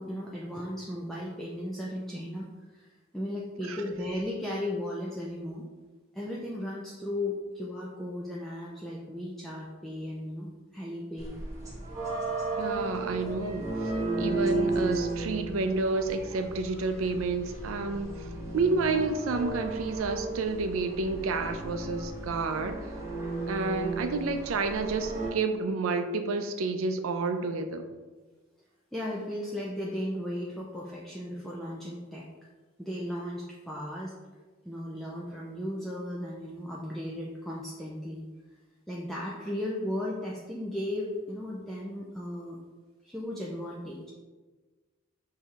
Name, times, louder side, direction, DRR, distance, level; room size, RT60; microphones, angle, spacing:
voice 1, 0.0-2.9 3.1-5.7 6.1-11.3 23.7-23.9 28.9-32.3 32.8-34.1 34.6-38.2 38.9-42.6 43.0-44.1, left 1 dB, ahead, -5 dB, 0.3 m, -36 dB
sound 1, 11.2-25.3, right 2 dB, 15° right, 1.0 m, -34 dB
voice 2, 12.6-18.3 18.5-22.9 23.5-27.9, right 3 dB, 80° right, 7 dB, 0.4 m, -30 dB
6.1 x 2.7 x 2.4 m, 1.3 s
head